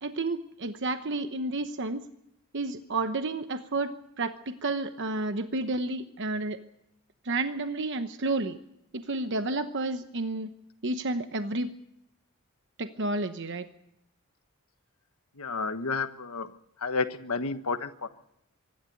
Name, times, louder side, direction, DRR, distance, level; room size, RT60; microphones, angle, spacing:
voice 1, 0.0-2.0 2.5-6.6 7.2-8.6 8.9-10.5 10.8-11.7 12.8-13.7, right 2 dB, 55° right, 8 dB, 1.0 m, -31 dB
voice 2, 15.4-16.5 16.8-18.1, left 4 dB, 85° left, 9 dB, 1.3 m, -31 dB
24.5 x 11.5 x 9.2 m, 0.80 s
head